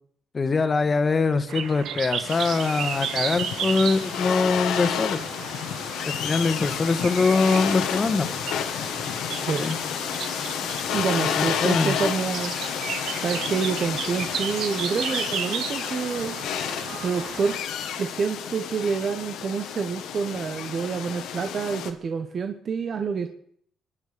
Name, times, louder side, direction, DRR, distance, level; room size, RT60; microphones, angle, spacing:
voice 1, 0.3-5.2 6.0-8.3 9.4-9.8 11.4-12.0, left 4 dB, 35° left, 10 dB, 1.6 m, -23 dB
sound 1, 1.5-17.6, right 8 dB, 75° right, 1.4 m, -34 dB
sound 2, 2.3-21.9, left 9 dB, 85° left, 1.5 m, -30 dB
voice 2, 10.9-12.5 13.2-16.4 17.0-17.6 18.0-23.3, right 5 dB, 50° right, 6 dB, 1.2 m, -27 dB
24.0 x 10.5 x 5.2 m, 0.66 s
cardioid pair, 90°, 0 cm